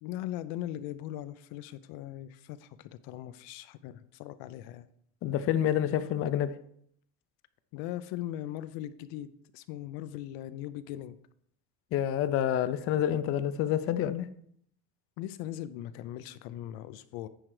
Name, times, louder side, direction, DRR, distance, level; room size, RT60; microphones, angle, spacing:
voice 1, 0.0-4.9 7.7-9.3 9.5-11.2 15.2-17.3, left 13 dB, 85° left, 13 dB, 0.6 m, -39 dB
voice 2, 5.2-6.6 11.9-14.3, left 10 dB, 40° left, 12 dB, 0.5 m, -28 dB
10.0 x 4.5 x 4.8 m, 0.68 s
cardioid pair, 165°, 35 cm